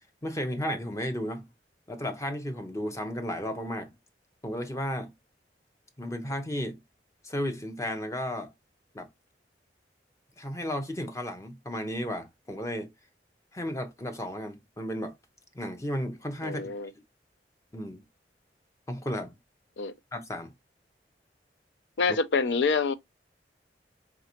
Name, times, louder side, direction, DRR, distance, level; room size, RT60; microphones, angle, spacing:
voice 1, 0.2-1.5 1.9-3.9 4.4-5.1 6.0-6.8 7.2-8.5 8.9-9.1 10.4-12.9 13.5-15.2 15.5-16.7 17.7-18.0 18.9-19.3 20.1-20.5, equal, 15° left, 0.6 m, -33 dB
voice 2, 16.4-16.9 19.8-19.9 22.0-22.9, left 4 dB, 85° left, 0.5 m, -26 dB
3.8 x 3.3 x 2.9 m
head